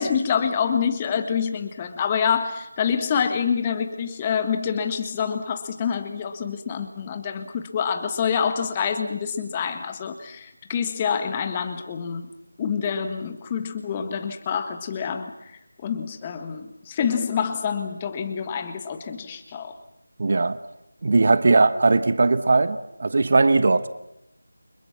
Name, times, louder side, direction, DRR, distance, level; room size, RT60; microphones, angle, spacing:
voice 1, 0.0-12.3 12.6-15.3 15.8-19.7, left 7 dB, 15° left, 8 dB, 1.5 m, -26 dB
voice 2, 20.2-20.6 21.0-23.9, right 3 dB, 40° right, 13 dB, 1.2 m, -19 dB
30.0 x 24.5 x 6.0 m, 0.82 s
figure-of-eight pair, 165°, 0 cm